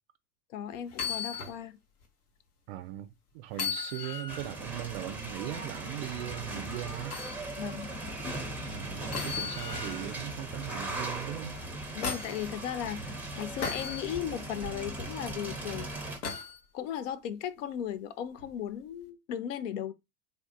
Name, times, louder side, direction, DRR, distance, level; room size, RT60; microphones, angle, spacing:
voice 1, 0.5-1.8 7.6-7.9 12.0-15.9 16.7-19.9, left 9 dB, 55° left, 0.5 m, -36 dB
sound 1, 0.9-1.6 2.0-2.1 3.5-4.5 7.1-7.4 9.1-10.1 11.5-12.5 13.6-14.0 16.2-16.6 18.4-18.5, left 6 dB, 75° left, 0.9 m, -36 dB
voice 2, 2.7-3.1 3.3-7.2 8.7-11.6, right 15 dB, 45° right, 0.4 m, -39 dB
sound 2, 4.3-16.2, right 1 dB, 5° right, 0.6 m, -39 dB
3.4 x 2.4 x 2.6 m
figure-of-eight pair, 80°, 46 cm